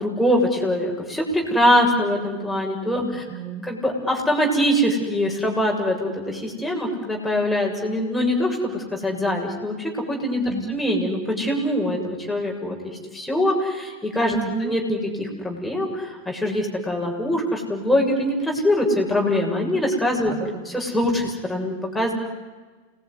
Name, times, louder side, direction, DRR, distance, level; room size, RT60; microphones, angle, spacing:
voice 1, 0.0-3.2 3.7-12.8 13.1-20.3 20.7-22.1, left 1 dB, 5° left, -1 dB, 7.2 m, -23 dB
voice 2, 3.0-3.7 10.5-10.8 14.3-14.7 20.3-20.6, right 5 dB, 20° right, 2 dB, 3.3 m, -31 dB
28.5 x 20.5 x 9.9 m, 1.3 s
figure-of-eight pair, 90°, 0 cm